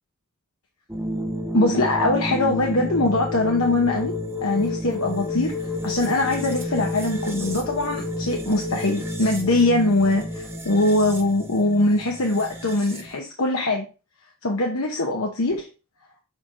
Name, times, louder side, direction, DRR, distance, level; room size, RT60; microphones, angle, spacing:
sound 1, 0.9-13.2, left 1 dB, 10° right, 0.8 m, -30 dB
voice 1, 1.5-4.1 4.4-13.9 14.4-15.7, left 2 dB, 75° left, 1 dB, 1.0 m, -22 dB
7.1 x 4.6 x 3.7 m, 0.32 s
head